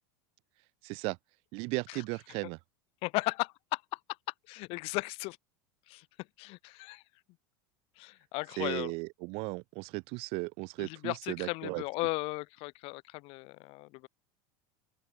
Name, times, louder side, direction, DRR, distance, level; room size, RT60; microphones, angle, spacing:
voice 1, 0.8-1.2 1.5-2.6 8.6-11.8, right 27 dB, 55° right, 0.6 m, -36 dB
voice 2, 3.0-4.0 4.5-5.4 5.9-6.0 6.4-7.0 8.0-8.9 10.8-14.1, left 24 dB, 50° left, 0.8 m, -36 dB
open air
supercardioid pair, 135°, 12 cm